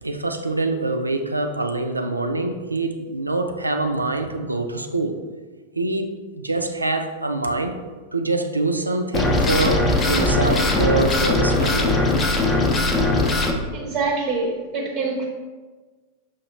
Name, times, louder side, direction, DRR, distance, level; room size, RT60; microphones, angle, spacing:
voice 1, 0.0-5.1 5.7-7.8 8.1-12.0, right 2 dB, 80° right, 6 dB, 0.3 m, -25 dB
sound 1, 9.1-13.5, left 2 dB, 25° left, 0.5 m, -20 dB
voice 2, 13.7-15.3, right 3 dB, 35° right, -1 dB, 0.5 m, -25 dB
5.7 x 2.3 x 3.0 m, 1.3 s
figure-of-eight pair, 90°, 0 cm